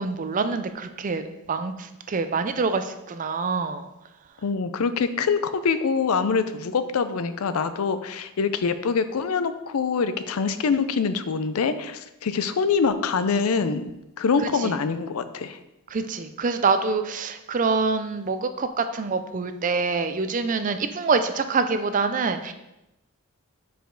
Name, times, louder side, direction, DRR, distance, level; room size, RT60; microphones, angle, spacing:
voice 1, 0.0-3.9 14.5-14.8 15.9-22.5, right 4 dB, 35° right, 9 dB, 0.4 m, -26 dB
voice 2, 4.4-13.9 14.2-15.6, left 5 dB, 75° left, 12 dB, 0.5 m, -24 dB
6.9 x 5.0 x 3.8 m, 0.93 s
head